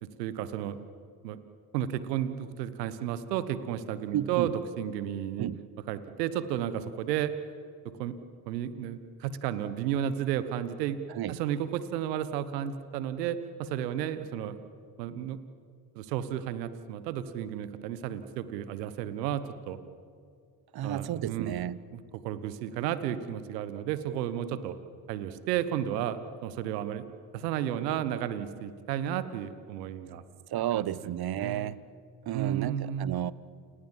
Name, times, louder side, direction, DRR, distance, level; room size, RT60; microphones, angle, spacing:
voice 1, 0.0-0.8 1.2-1.4 1.7-5.5 5.9-7.3 8.0-8.1 8.5-11.0 11.3-14.6 15.0-15.4 15.9-19.8 20.8-21.5 22.2-24.8 25.1-27.1 27.3-30.2 30.7-30.8 31.4-31.7 32.3-33.2, right 10 dB, 85° right, 13 dB, 1.3 m, -32 dB
voice 2, 4.1-4.5 5.4-5.6 11.1-11.4 20.7-21.8 30.5-31.8 32.3-33.3, right 11 dB, 50° right, 19 dB, 1.1 m, -32 dB
29.0 x 20.0 x 7.5 m, 2.3 s
hypercardioid pair, 55°, 48 cm